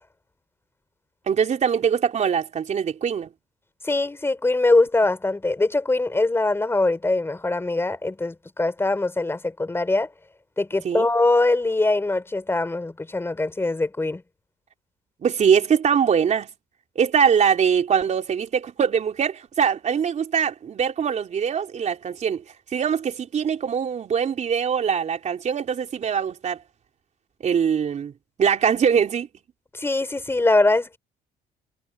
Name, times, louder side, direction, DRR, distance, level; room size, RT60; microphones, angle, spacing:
voice 1, 1.3-3.3 10.8-11.1 15.2-16.5 17.0-22.4 22.7-26.6 27.4-28.1 28.4-29.3, right 7 dB, 45° right, 3.9 m, -22 dB
voice 2, 3.8-10.1 10.6-14.2 29.7-31.0, left 2 dB, 15° left, 3.7 m, -22 dB
cardioid pair, 110°, 17 cm